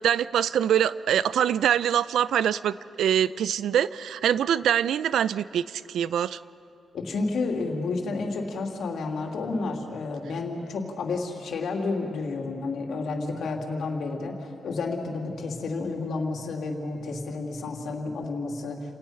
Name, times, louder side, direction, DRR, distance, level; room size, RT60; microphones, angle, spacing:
voice 1, 0.0-6.4, right 9 dB, 85° right, 17 dB, 0.5 m, -24 dB
voice 2, 6.9-18.9, left 3 dB, 70° left, 1 dB, 2.8 m, -31 dB
29.0 x 18.0 x 5.8 m, 2.7 s
cardioid pair, 105°, 0 cm